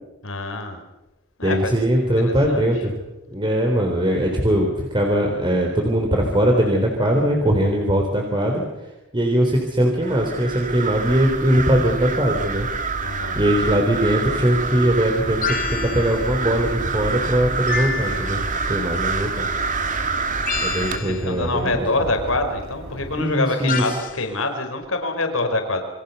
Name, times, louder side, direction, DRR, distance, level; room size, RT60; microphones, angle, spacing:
voice 1, 0.2-0.8 1.4-2.8 13.0-13.4 18.8-19.2 20.8-25.8, left 2 dB, 70° left, 5 dB, 4.9 m, -26 dB
voice 2, 1.4-2.9 3.3-8.6 9.1-12.7 13.4-19.5 20.6-21.8 23.2-23.8, equal, 25° right, 1 dB, 3.8 m, -20 dB
sound 1, 10.0-21.0, right 4 dB, 40° right, 2.5 m, -27 dB
sound 2, 15.1-23.2, equal, 70° right, 5.1 m, -36 dB
sound 3, 15.4-16.4 17.7-18.6 20.5-21.4 23.7-24.2, left 6 dB, 40° left, 2.9 m, -29 dB
28.5 x 24.5 x 7.0 m, 0.98 s
head